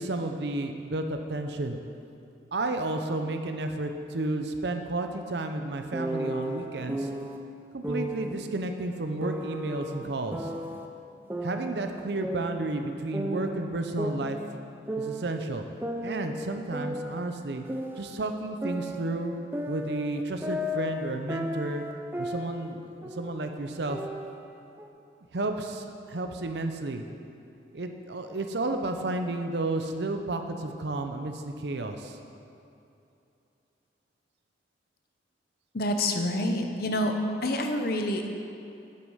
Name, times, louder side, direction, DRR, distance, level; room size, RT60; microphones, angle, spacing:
voice 1, 0.0-1.8 2.5-7.1 7.7-10.5 11.4-14.4 15.0-15.7 16.0-17.6 18.0-19.3 19.7-21.8 22.2-24.0 25.3-27.0 27.7-32.2, right 2 dB, 65° right, 6 dB, 0.7 m, -32 dB
sound 1, 5.9-7.4 7.8-8.4 9.2-10.9 11.3-12.9 13.1-15.4 15.8-18.3 18.6-22.7 23.0-23.4 23.9-24.9, equal, 10° right, 0.5 m, -34 dB
voice 2, 35.7-37.1 37.4-38.3, left 1 dB, 55° left, 5 dB, 0.8 m, -27 dB
8.5 x 7.9 x 5.6 m, 2.7 s
head